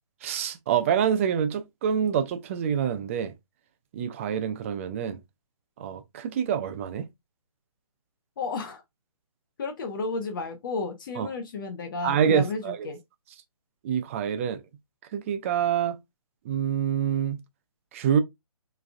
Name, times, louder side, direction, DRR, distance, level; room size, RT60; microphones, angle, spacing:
voice 1, 0.2-3.3 3.9-5.2 5.8-7.0 11.2-11.3 12.0-12.9 13.8-14.6 15.1-16.0 16.5-17.4 17.9-18.2, right 8 dB, 25° right, 0.5 m, -26 dB
voice 2, 8.4-8.8 9.6-13.0, left 4 dB, 35° left, 0.8 m, -32 dB
4.7 x 3.3 x 2.4 m
figure-of-eight pair, 140°, 18 cm